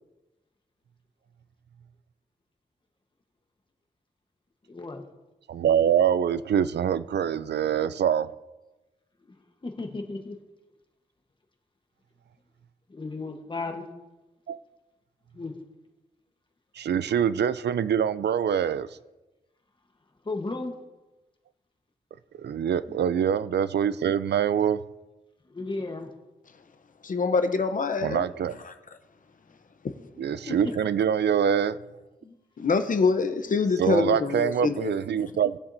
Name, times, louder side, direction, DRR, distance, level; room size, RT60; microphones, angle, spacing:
voice 1, 4.7-5.0 9.2-9.4 9.6-10.4 12.9-13.9 15.3-15.6 20.2-20.8 22.8-23.0 25.5-26.1 30.5-30.7 32.2-32.3 33.5-33.6, left 3 dB, 30° left, 1.1 m, -34 dB
voice 2, 5.5-8.3 14.5-14.6 16.8-18.9 22.4-24.8 28.0-28.6 30.2-31.8 33.8-35.6, right 8 dB, 85° right, 0.4 m, -24 dB
voice 3, 27.0-28.3 28.6-28.7 32.6-34.9, left 4 dB, 50° left, 0.7 m, -25 dB
19.0 x 7.1 x 2.6 m
wide cardioid pair, 160°, 17 cm